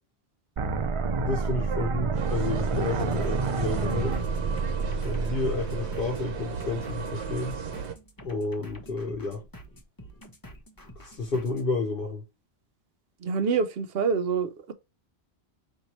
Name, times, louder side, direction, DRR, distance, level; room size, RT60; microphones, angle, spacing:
sound 1, 0.6-6.5, right 4 dB, 50° right, 0.4 m, -29 dB
voice 1, 1.1-4.2 5.0-7.6 8.2-9.4 11.0-12.2, left 3 dB, 55° left, 0.9 m, -31 dB
sound 2, 2.1-7.9, right 5 dB, 90° right, 1.0 m, -35 dB
sound 3, 2.8-11.7, right 1 dB, 20° left, 0.7 m, -48 dB
voice 2, 13.2-14.7, right 5 dB, 65° right, 0.8 m, -27 dB
4.5 x 2.7 x 4.0 m
omnidirectional pair, 1.1 m